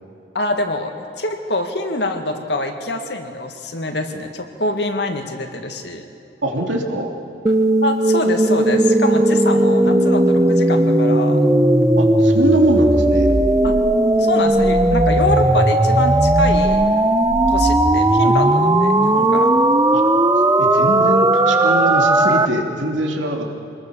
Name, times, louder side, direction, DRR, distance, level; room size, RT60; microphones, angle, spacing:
voice 1, 0.3-6.1 7.8-11.4 13.6-13.8 14.2-16.8 17.5-19.5, left 2 dB, 65° left, 5 dB, 2.1 m, -25 dB
voice 2, 6.4-7.1 12.0-13.3 19.9-20.0 20.6-23.5, right 1 dB, 90° right, 1 dB, 3.1 m, -22 dB
sound 1, 7.5-22.5, right 1 dB, 15° right, 0.8 m, -16 dB
25.5 x 20.5 x 7.0 m, 2.6 s
head